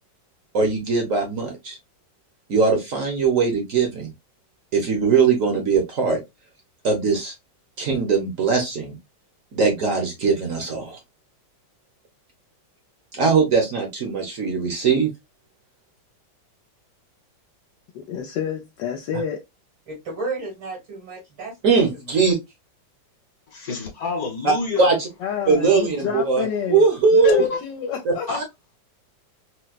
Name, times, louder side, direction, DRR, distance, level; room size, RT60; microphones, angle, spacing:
voice 1, 0.5-1.8 2.5-4.1 4.7-6.2 6.8-7.3 7.8-8.9 9.5-11.0 13.1-15.1 21.6-22.4 24.4-25.1 25.5-27.4 28.0-28.4, right 4 dB, 55° right, 1.1 m, -20 dB
voice 2, 17.9-19.4 25.2-27.2 27.6-28.3, left 7 dB, 75° left, 1.2 m, -29 dB
voice 3, 19.9-22.1, right 3 dB, 85° right, 2.6 m, -33 dB
voice 4, 23.5-24.9 27.2-27.6 28.3-28.4, left 4 dB, 55° left, 1.4 m, -26 dB
4.4 x 2.1 x 2.3 m
omnidirectional pair, 2.1 m